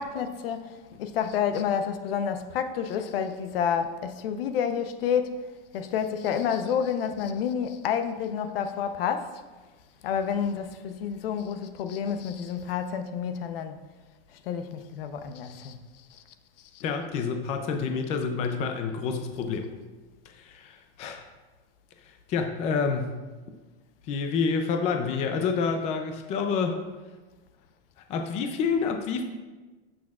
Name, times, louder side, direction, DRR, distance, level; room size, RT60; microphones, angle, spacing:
voice 1, 0.0-5.4 5.7-9.4 10.0-13.8 14.4-15.8 16.1-16.2 16.7-16.8, left 7 dB, 65° left, 0.8 m, -29 dB
voice 2, 16.8-19.7 20.4-21.3 22.3-23.2 24.1-26.8 28.1-29.2, left 5 dB, 20° left, 0.5 m, -28 dB
14.5 x 6.3 x 2.4 m
supercardioid pair, 160°, 31 cm